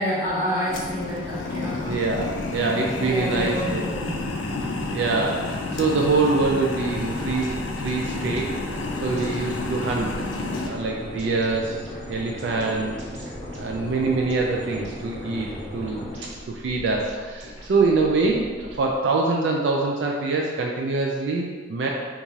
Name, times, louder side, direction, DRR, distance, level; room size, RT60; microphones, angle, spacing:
voice 1, 0.0-2.0 3.0-4.2, equal, 20° right, -11 dB, 1.4 m, -28 dB
sound 1, 0.7-10.7, left 2 dB, 80° left, 0.4 m, -30 dB
voice 2, 1.9-3.8 4.8-10.1 10.6-11.8 12.1-12.9 13.6-15.5 15.7-16.1 16.5-18.5 18.7-21.9, right 3 dB, 70° right, 0 dB, 0.3 m, -24 dB
sound 2, 6.6-18.9, equal, 85° right, 0.8 m, -42 dB
sound 3, 7.9-16.2, equal, 20° left, 0.7 m, -38 dB
4.5 x 2.4 x 2.7 m, 1.5 s
head